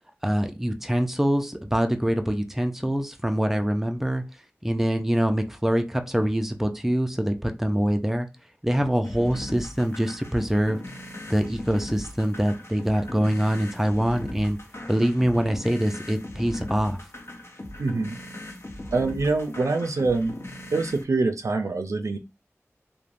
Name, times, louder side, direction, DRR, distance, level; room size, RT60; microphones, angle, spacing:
voice 1, 0.2-4.2 4.6-8.3 8.6-10.8 11.3-14.6 14.9-17.0, equal, 5° right, 0.4 m, -24 dB
sound 1, 9.0-21.0, left 1 dB, 55° left, 0.6 m, -39 dB
voice 2, 17.8-18.2 18.9-20.4 20.7-22.2, right 3 dB, 80° right, 0.3 m, -25 dB
3.1 x 2.1 x 2.5 m
wide cardioid pair, 55°, 5 cm